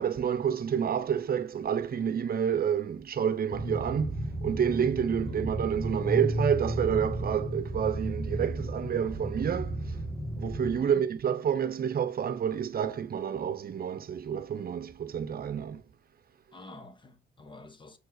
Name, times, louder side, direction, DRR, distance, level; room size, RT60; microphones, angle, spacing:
voice 1, 0.0-10.0 10.4-15.8, right 8 dB, 50° right, 0.9 m, -29 dB
sound 1, 3.5-10.8, right 1 dB, 5° right, 1.7 m, -33 dB
voice 2, 16.5-18.0, left 2 dB, 25° left, 1.5 m, -49 dB
7.3 x 4.5 x 4.6 m
cardioid pair, 90°, 20 cm